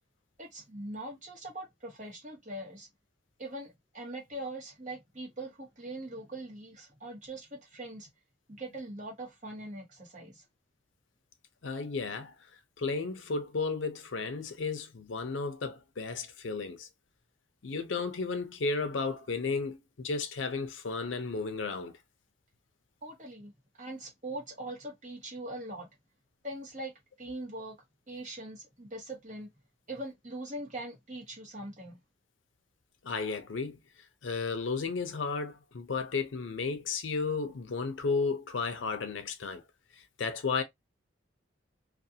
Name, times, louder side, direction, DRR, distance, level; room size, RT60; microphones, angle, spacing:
voice 1, 0.4-2.9 3.4-8.1 8.6-10.4 23.0-23.5 23.8-25.9 26.4-26.9 27.2-27.7 28.1-29.5 29.9-32.0, right 1 dB, 40° right, 1.1 m, -42 dB
voice 2, 11.6-12.3 12.8-16.9 17.6-21.9 33.0-33.8 34.2-39.6 39.9-40.6, left 4 dB, 80° left, 0.6 m, -33 dB
2.5 x 2.4 x 2.7 m
head